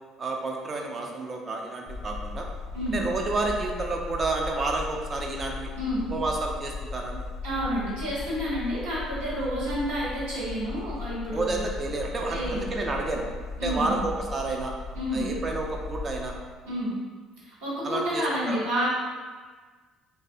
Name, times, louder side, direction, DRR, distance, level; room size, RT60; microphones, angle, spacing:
voice 1, 0.2-2.5 2.9-5.7 6.1-7.2 11.3-13.3 13.6-14.7 15.1-16.3 17.8-18.6, right 3 dB, 35° right, 1 dB, 0.5 m, -30 dB
sound 1, 1.9-16.4, left 4 dB, 25° left, 0.4 m, -37 dB
voice 2, 7.4-11.6 12.3-12.6 13.6-14.0 14.9-15.3 16.6-16.9 17.4-18.8, equal, 75° right, -9 dB, 1.1 m, -30 dB
3.2 x 2.1 x 2.6 m, 1.5 s
figure-of-eight pair, 55°, 0 cm